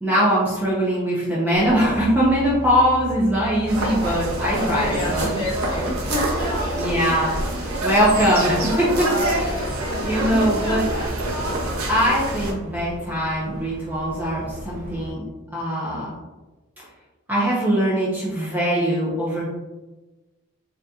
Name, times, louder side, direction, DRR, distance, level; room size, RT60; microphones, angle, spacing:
voice 1, 0.0-5.3 6.8-8.9 10.0-10.8 11.9-15.2 15.5-16.1 17.3-19.4, equal, 10° right, -7 dB, 0.5 m, -21 dB
sound 1, 1.5-15.1, right 1 dB, 45° right, 1.0 m, -36 dB
sound 2, 3.7-12.5, right 1 dB, 85° right, 0.7 m, -27 dB
voice 2, 4.5-6.6 8.8-11.1 11.6-11.8, equal, 20° left, -5 dB, 0.8 m, -29 dB
3.9 x 2.7 x 2.3 m, 1.1 s
head